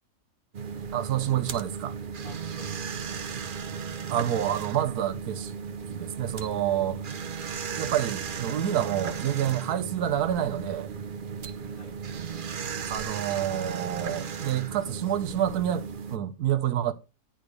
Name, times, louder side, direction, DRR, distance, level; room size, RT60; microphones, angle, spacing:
sound 1, 0.5-16.2, right 6 dB, 50° right, 0.6 m, -35 dB
voice 1, 0.9-1.9 4.1-5.5 5.9-7.0 7.8-10.9 12.8-16.9, right 11 dB, 75° right, 1.2 m, -28 dB
voice 2, 2.2-3.4 11.6-12.0 14.7-15.4, left 3 dB, 65° left, 2.6 m, -52 dB
10.0 x 3.9 x 6.3 m
omnidirectional pair, 1.7 m